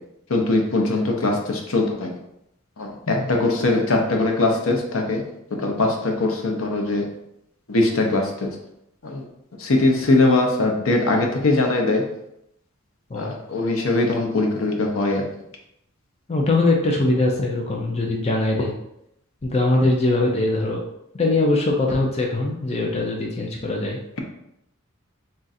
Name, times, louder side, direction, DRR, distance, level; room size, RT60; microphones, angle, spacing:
voice 1, 0.3-2.1 2.8-5.2 5.6-7.1 7.7-8.5 9.0-9.2 9.6-12.0 13.1-15.2, left 2 dB, 75° left, 1 dB, 0.8 m, -21 dB
voice 2, 16.3-18.7 19.4-20.8 21.2-24.0, left 2 dB, 30° left, -1 dB, 0.5 m, -21 dB
3.7 x 2.5 x 4.1 m, 0.80 s
head